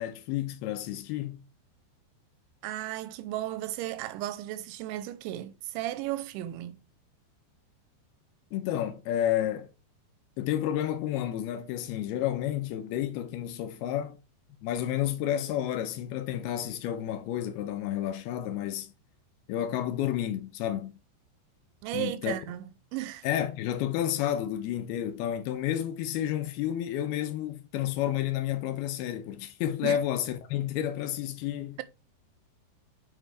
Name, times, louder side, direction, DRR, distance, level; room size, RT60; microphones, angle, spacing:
voice 1, 0.0-1.4 8.5-9.7 10.4-14.2 14.6-18.9 19.5-21.0 21.9-22.3 23.2-31.8, left 11 dB, 80° left, 2.3 m, -31 dB
voice 2, 2.6-6.8 21.8-23.3 29.8-30.0, right 14 dB, 85° right, 3.0 m, -35 dB
7.3 x 5.6 x 3.3 m
omnidirectional pair, 5.4 m